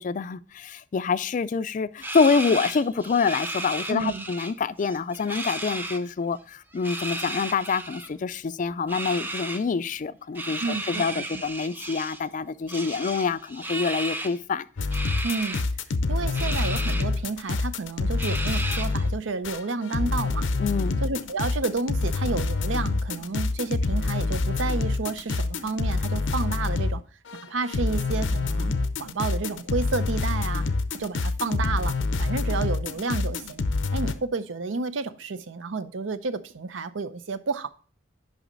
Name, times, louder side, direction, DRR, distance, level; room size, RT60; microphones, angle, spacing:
voice 1, 0.0-14.7 20.6-21.0, left 5 dB, 45° left, 0.3 m, -26 dB
sound 1, 2.0-4.5 4.8-6.0 6.7-8.1 8.9-9.6 10.4-12.2 12.7-14.4 14.9-15.6 16.3-17.1 17.5-17.6 18.2-19.1, right 1 dB, 10° right, 0.6 m, -34 dB
voice 2, 3.9-4.3 10.6-11.3 15.2-15.6 16.1-20.5 21.0-27.0 27.4-28.7 29.0-30.6 30.9-31.9 32.2-33.6 33.9-37.7, right 4 dB, 90° right, 0.6 m, -30 dB
sound 2, 14.8-27.0 27.3-34.1, left 3 dB, 90° left, 0.6 m, -27 dB
9.1 x 5.5 x 3.9 m
head